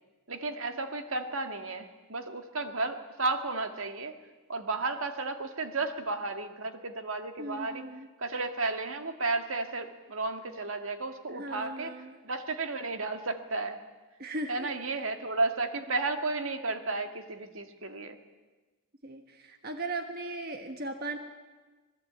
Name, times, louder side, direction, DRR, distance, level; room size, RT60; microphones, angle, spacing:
voice 1, 0.3-4.1 4.5-7.8 8.2-11.9 12.2-13.8 14.5-18.2, right 3 dB, 65° right, 7 dB, 2.0 m, -33 dB
voice 2, 7.4-8.1 11.3-12.2 14.2-15.0 19.0-21.2, right 2 dB, 45° right, 6 dB, 1.5 m, -38 dB
26.5 x 19.0 x 8.7 m, 1.3 s
head